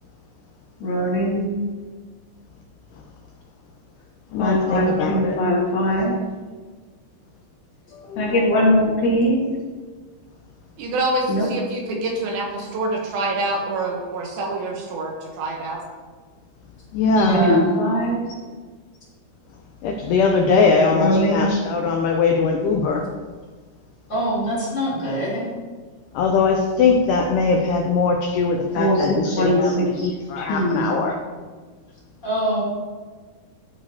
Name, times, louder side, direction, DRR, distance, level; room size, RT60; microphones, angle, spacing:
voice 1, 0.8-1.6 4.4-6.2 8.2-9.4 11.3-11.5 17.3-18.2 20.9-21.6 28.8-30.1 30.4-30.9, equal, 60° left, -4 dB, 2.7 m, -20 dB
voice 2, 4.3-5.4 7.9-8.3 16.9-17.4 19.8-23.0 26.1-31.2, left 4 dB, 85° left, 2 dB, 1.8 m, -21 dB
voice 3, 10.8-15.8, right 2 dB, 75° right, 0 dB, 2.7 m, -26 dB
voice 4, 17.2-17.6 24.1-25.5 32.2-32.6, equal, 30° left, -7 dB, 1.9 m, -24 dB
12.5 x 4.8 x 2.8 m, 1.4 s
omnidirectional pair, 4.4 m